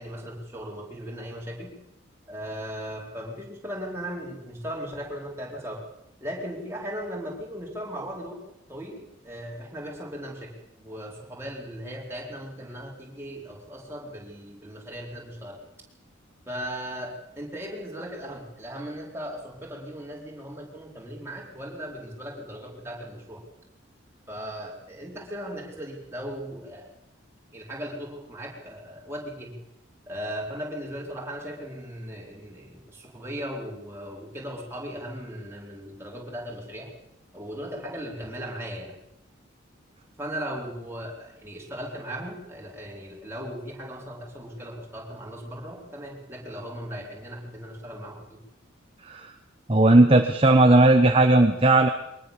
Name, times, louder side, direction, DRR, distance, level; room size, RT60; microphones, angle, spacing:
voice 1, 0.0-1.7 2.3-5.8 6.2-8.4 8.7-15.6 16.5-23.4 24.3-26.9 27.5-29.5 30.1-36.9 37.3-38.9 40.2-48.2, equal, 15° right, -2 dB, 4.7 m, -37 dB
voice 2, 49.0-49.3 49.7-51.9, right 2 dB, 30° right, 5 dB, 1.2 m, -17 dB
22.5 x 19.5 x 7.2 m, 0.83 s
head